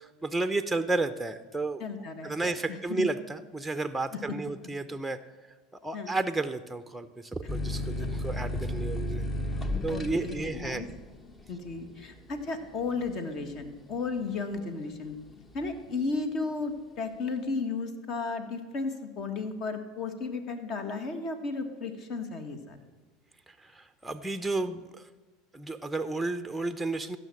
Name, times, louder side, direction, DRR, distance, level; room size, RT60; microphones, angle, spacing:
voice 1, 0.0-1.9 2.2-5.2 5.8-9.3 9.8-10.9 23.5-25.1 25.5-27.2, right 2 dB, 5° right, 10 dB, 0.6 m, -32 dB
voice 2, 1.8-3.1 4.1-4.2 5.9-6.1 9.9-10.9 11.5-15.2 15.5-22.8, left 4 dB, 50° left, 7 dB, 1.6 m, -34 dB
sound 1, 7.5-14.8 15.2-15.9, left 1 dB, 25° left, 0.9 m, -34 dB
14.0 x 5.9 x 7.6 m, 1.3 s
supercardioid pair, 100°, 0 cm